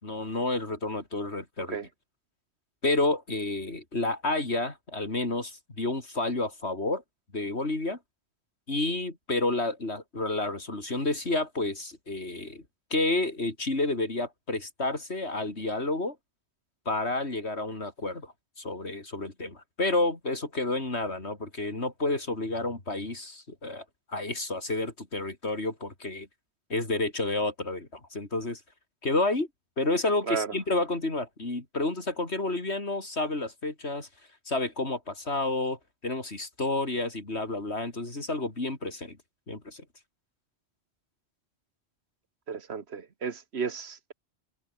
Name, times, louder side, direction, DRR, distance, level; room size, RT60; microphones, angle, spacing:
voice 1, 0.0-1.8 2.8-7.0 7.3-8.0 8.7-12.6 12.9-16.2 16.9-26.3 26.7-28.6 29.0-29.5 29.8-34.1 34.5-39.2 39.5-39.8, left 2 dB, 80° left, 4.5 m, -30 dB
voice 2, 42.5-44.1, right 6 dB, 75° right, 1.6 m, -33 dB
omnidirectional pair, 1.1 m